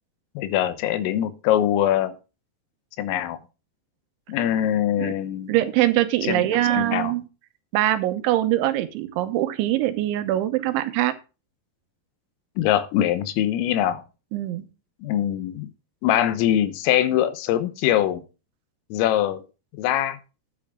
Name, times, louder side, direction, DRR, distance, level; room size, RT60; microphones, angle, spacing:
voice 1, 0.4-2.2 3.0-3.4 4.3-5.6 6.3-6.4 6.7-7.1 12.6-14.0 15.0-15.7 16.0-18.2 18.9-19.4 19.8-20.2, left 11 dB, 90° left, 3.7 m, -23 dB
voice 2, 5.5-7.2 7.7-11.1 14.3-14.6, right 14 dB, 75° right, 3.1 m, -23 dB
10.5 x 10.0 x 3.6 m
omnidirectional pair, 5.8 m